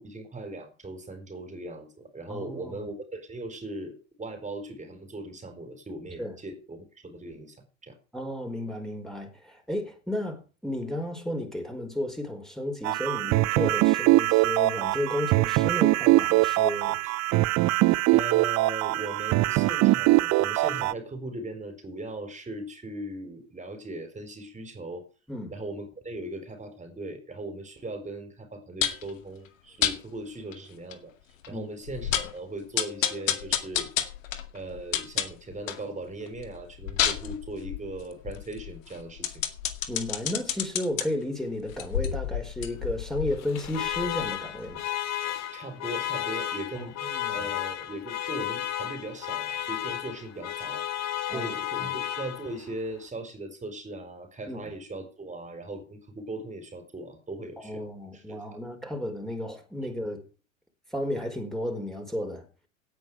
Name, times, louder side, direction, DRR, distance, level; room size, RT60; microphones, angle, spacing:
voice 1, 0.0-7.6 7.8-8.0 18.1-25.0 25.5-31.1 31.5-33.9 34.5-39.4 45.5-46.9 47.3-50.9 51.3-57.9 58.1-58.6, right 2 dB, 20° right, 4.4 m, -39 dB
voice 2, 2.3-2.8 6.2-6.3 8.1-17.0 25.3-25.5 31.5-31.7 39.9-44.9 46.7-47.5 51.3-51.5 51.8-51.9 54.5-54.6 57.6-60.2 60.9-62.4, left 1 dB, ahead, 4.8 m, -33 dB
sound 1, 12.8-20.9, right 19 dB, 40° right, 0.8 m, -22 dB
sound 2, 28.8-29.1 29.8-30.0 30.5-30.6 30.9-31.0 31.4-31.5 31.9-32.4 32.8-35.9 36.3-41.0 41.7-44.4 44.7-44.8, left 10 dB, 75° left, 2.2 m, -30 dB
Alarm, 43.3-52.7, left 12 dB, 40° left, 2.4 m, -33 dB
17.0 x 9.3 x 4.9 m
hypercardioid pair, 85°, 39 cm